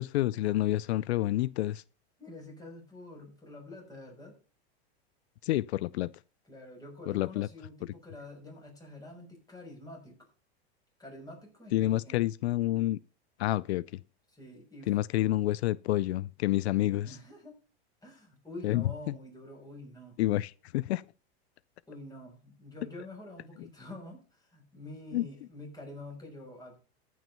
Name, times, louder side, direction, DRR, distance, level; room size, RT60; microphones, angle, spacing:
voice 1, 0.0-1.8 5.4-6.1 7.1-7.5 11.7-13.0 13.4-13.8 14.9-17.2 18.6-19.1 20.2-21.0 25.1-25.3, left 15 dB, 85° left, 0.5 m, -28 dB
voice 2, 2.2-4.4 6.4-10.3 11.0-12.2 14.3-15.0 17.0-17.6 18.0-20.2 21.9-26.8, left 1 dB, 10° left, 6.2 m, -47 dB
14.5 x 6.3 x 5.5 m
hypercardioid pair, 115°, 32 cm